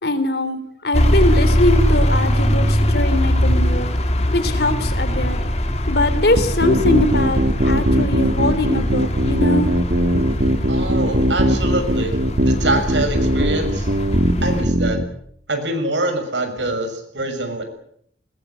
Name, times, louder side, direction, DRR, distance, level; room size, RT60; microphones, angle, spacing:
voice 1, 0.0-3.9 4.3-5.4 5.9-9.7, left 1 dB, 65° left, 11 dB, 3.6 m, -21 dB
sound 1, 0.9-14.6, equal, 35° left, 3.0 m, -21 dB
sound 2, 6.4-15.0, equal, 65° right, 2.7 m, -19 dB
voice 2, 10.7-12.2 12.4-13.9 14.4-15.0 15.5-17.6, right 2 dB, 90° right, 6 dB, 6.6 m, -24 dB
21.0 x 20.5 x 9.9 m, 0.68 s
head